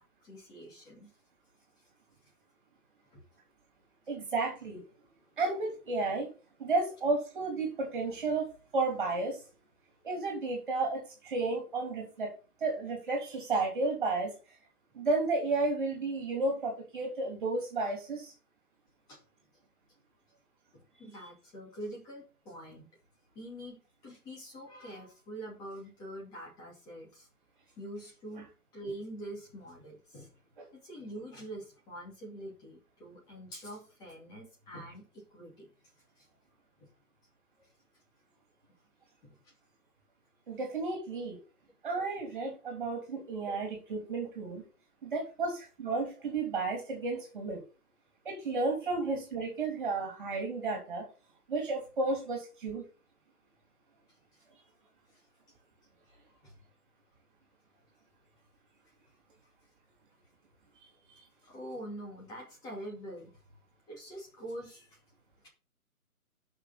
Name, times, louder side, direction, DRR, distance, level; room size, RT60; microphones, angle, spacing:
voice 1, 0.2-1.1 3.1-3.2 19.1-19.2 21.0-22.9 23.3-27.3 27.8-28.5 28.7-30.3 30.7-35.0 35.3-35.7 36.2-36.3 36.8-36.9 39.2-39.4 55.1-55.2 56.4-56.5 61.4-63.3 63.9-65.0, right 1 dB, 10° left, -2 dB, 2.4 m, -45 dB
voice 2, 4.1-4.8 5.4-6.3 6.6-9.4 10.0-12.3 12.6-14.3 14.9-18.3 30.6-30.7 40.5-41.4 41.8-44.6 45.0-47.6 48.2-51.0 51.5-52.8 61.1-61.2, right 3 dB, 35° right, 2 dB, 3.1 m, -32 dB
12.0 x 5.9 x 4.1 m, 0.34 s
figure-of-eight pair, 145°, 45 cm